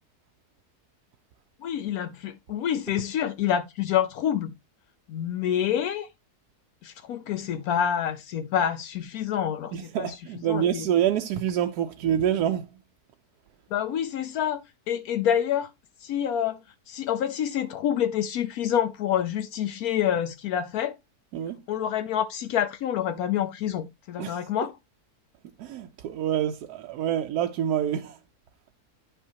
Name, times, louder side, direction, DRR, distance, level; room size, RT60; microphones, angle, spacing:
voice 1, 1.6-4.5 5.1-6.1 6.8-10.1 10.5-10.9 13.7-14.6 14.9-15.7 16.0-16.6 16.9-21.0 21.7-24.7, left 9 dB, 75° left, 1.0 m, -27 dB
voice 2, 9.7-12.7 21.3-21.6 24.2-24.5 25.6-28.2, right 10 dB, 85° right, 1.1 m, -27 dB
9.8 x 5.5 x 2.7 m
omnidirectional pair, 1.6 m